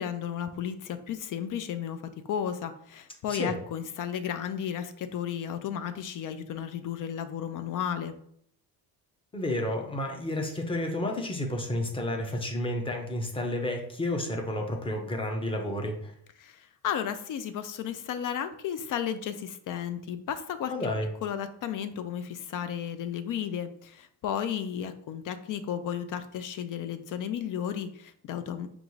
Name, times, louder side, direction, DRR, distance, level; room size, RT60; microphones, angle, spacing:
voice 1, 0.0-8.2 16.4-20.7 21.2-28.8, left 9 dB, 55° left, 10 dB, 0.4 m, -33 dB
voice 2, 9.3-16.1 20.7-21.1, left 1 dB, 15° left, 2 dB, 0.7 m, -31 dB
5.1 x 2.5 x 3.1 m, 0.65 s
cardioid pair, 120°, 40 cm